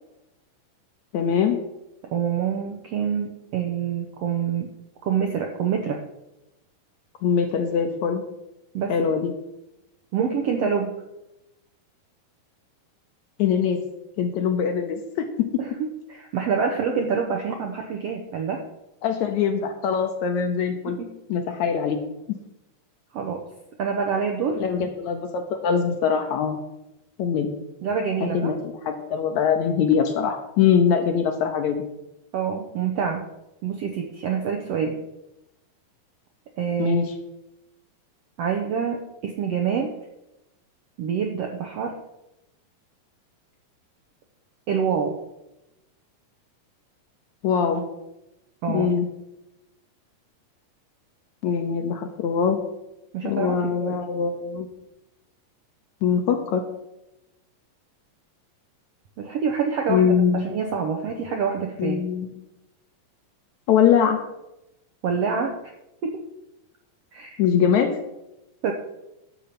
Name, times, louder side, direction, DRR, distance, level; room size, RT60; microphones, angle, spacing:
voice 1, 1.1-1.6 7.2-8.2 8.9-9.3 13.4-13.8 14.2-15.5 19.0-21.0 21.3-22.0 22.3-22.4 24.6-26.6 27.2-27.5 28.2-31.9 36.8-37.1 47.4-47.8 48.7-49.1 51.4-52.6 53.2-54.7 56.0-56.6 59.9-60.4 61.8-62.3 63.7-64.2 67.4-68.0, left 7 dB, 75° left, 6 dB, 1.8 m, -22 dB
voice 2, 2.0-4.7 5.0-6.0 8.7-9.1 10.1-11.0 15.6-18.6 23.1-23.4 23.8-24.6 27.8-28.5 32.3-33.2 33.6-35.0 36.6-37.0 38.4-39.9 41.0-42.0 44.7-45.2 48.6-48.9 53.1-54.0 59.2-62.0 65.0-65.7 66.0-66.2 67.1-67.4 68.6-68.7, right 6 dB, 75° right, 3 dB, 1.4 m, -26 dB
10.5 x 6.8 x 5.9 m, 0.91 s
omnidirectional pair, 4.0 m